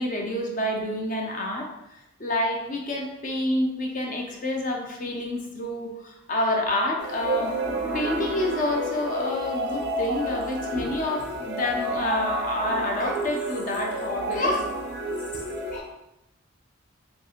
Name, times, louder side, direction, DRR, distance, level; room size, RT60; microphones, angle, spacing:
voice 1, 0.0-7.5 7.9-14.7 15.3-15.9, left 1 dB, 40° left, 1 dB, 0.4 m, -28 dB
sound 1, 7.0-15.8, right 1 dB, 55° right, 0.4 m, -30 dB
2.7 x 2.5 x 2.4 m, 0.89 s
head